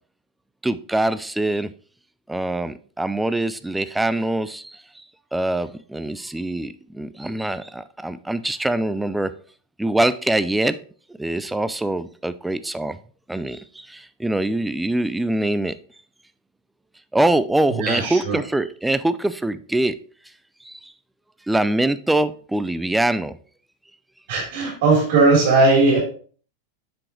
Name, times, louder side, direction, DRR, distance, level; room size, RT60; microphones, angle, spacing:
voice 1, 0.6-1.7 2.3-5.0 5.3-9.3 9.8-10.8 11.2-13.0 13.3-15.8 17.1-20.0 20.6-20.9 21.5-23.4, right 1 dB, 5° right, 14 dB, 0.3 m, -23 dB
voice 2, 17.7-18.4 24.3-26.0, right 3 dB, 50° right, -1 dB, 3.4 m, -18 dB
7.6 x 6.1 x 3.0 m, 0.42 s
figure-of-eight pair, 90°, 0 cm